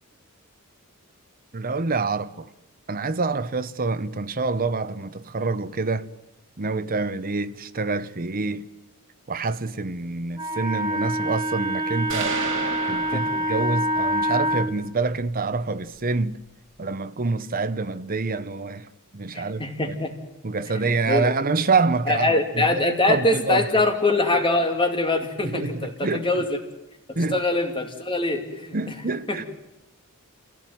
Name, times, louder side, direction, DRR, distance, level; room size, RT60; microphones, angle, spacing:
voice 1, 1.5-2.5 2.9-6.1 6.6-8.7 9.3-12.4 12.9-16.4 16.8-18.9 19.1-20.0 20.4-23.7 25.4-26.5 27.2-27.4 28.7-29.5, right 3 dB, 40° right, 0.9 m, -26 dB
Wind instrument woodwind instrument, 10.3-14.7, equal, 20° right, 2.9 m, -26 dB
sound 1, 12.1-14.1, right 4 dB, 60° right, 3.1 m, -32 dB
voice 2, 19.3-20.1 21.1-21.3 22.1-26.6 27.1-28.8 29.3-29.5, left 2 dB, 25° left, 2.6 m, -23 dB
27.0 x 17.0 x 9.3 m
head